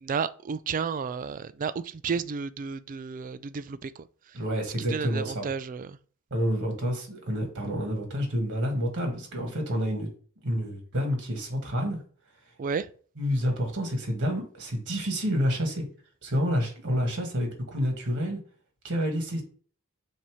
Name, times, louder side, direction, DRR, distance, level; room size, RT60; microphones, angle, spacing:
voice 1, 0.0-4.1 4.9-6.0 12.6-12.9, right 5 dB, 35° right, 0.3 m, -32 dB
voice 2, 4.3-5.5 6.3-10.1 10.4-12.0 13.2-15.8 16.2-18.4 18.8-19.4, equal, 55° right, 1.9 m, -28 dB
7.3 x 2.8 x 4.8 m
head